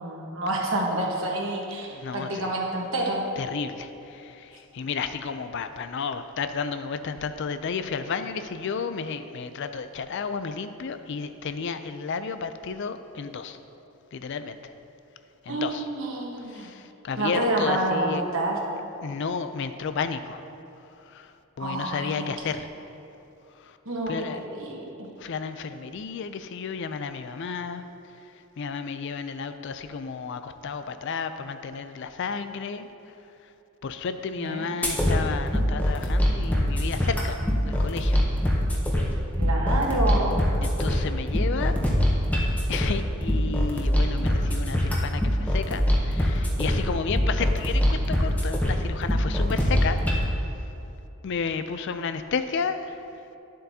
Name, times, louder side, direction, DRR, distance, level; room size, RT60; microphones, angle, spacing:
voice 1, 0.0-3.3 15.5-16.7 17.2-18.6 21.6-22.5 23.8-25.1 34.4-34.7 39.4-40.4, right 1 dB, 60° right, -1 dB, 1.2 m, -28 dB
voice 2, 1.9-2.5 3.4-13.6 14.1-14.7 15.5-15.9 16.5-18.2 19.0-20.4 21.1-21.3 21.6-22.7 23.6-23.8 24.1-24.4 25.2-27.8 28.6-32.9 33.8-38.2 40.6-41.8 42.7-50.0 51.2-53.0, left 5 dB, 55° left, 10 dB, 0.4 m, -32 dB
sound 1, 34.8-50.2, equal, 5° left, 0.8 m, -24 dB
11.0 x 7.5 x 2.8 m, 2.9 s
head